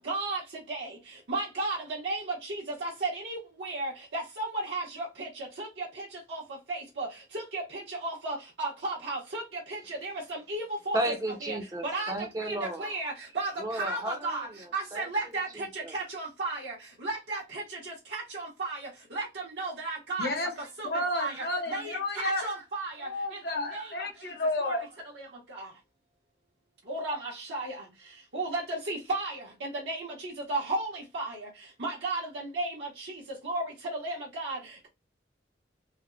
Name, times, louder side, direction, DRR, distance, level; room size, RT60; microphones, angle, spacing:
voice 1, 0.1-0.4 0.7-0.9 1.3-1.8 2.0-2.2 2.8-4.8 5.2-5.3 5.6-5.9 6.3-6.4 6.7-7.1 7.3-7.6 8.0-9.4 9.7-10.1 10.5-11.0 11.4-11.6 11.9-12.1 12.4-12.5 12.8-13.5 13.8-14.5 14.7-15.5 15.9-16.7 17.0-17.6 18.1-18.8 19.1-19.2 19.6-20.3 20.8-20.9 21.1-21.3 21.7-22.9 23.7-23.8 24.6-24.8 26.9-27.7 28.3-29.3 29.6-30.9 31.1-31.3 31.8-32.2 32.5-32.7 33.4-33.6 34.0-34.6, right 2 dB, 70° right, 0.9 m, -33 dB
voice 2, 10.9-12.9 13.6-15.9, right 1 dB, 20° right, 0.6 m, -34 dB
voice 3, 20.2-20.5 20.8-22.4 23.0-24.8, left 2 dB, 60° left, 0.7 m, -31 dB
3.3 x 2.1 x 2.4 m
head